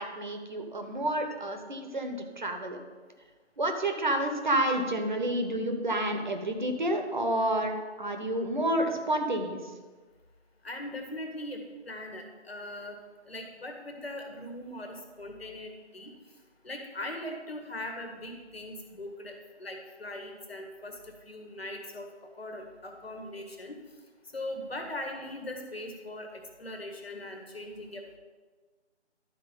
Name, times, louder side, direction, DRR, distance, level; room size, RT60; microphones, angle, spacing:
voice 1, 0.0-2.8 3.6-9.7, right 1 dB, 45° right, 5 dB, 1.1 m, -29 dB
voice 2, 10.6-11.6 11.9-13.0 13.3-16.1 16.6-22.1 22.3-23.8 24.3-28.2, left 1 dB, 60° left, 4 dB, 1.8 m, -40 dB
12.0 x 4.5 x 5.5 m, 1.4 s
figure-of-eight pair, 155°, 34 cm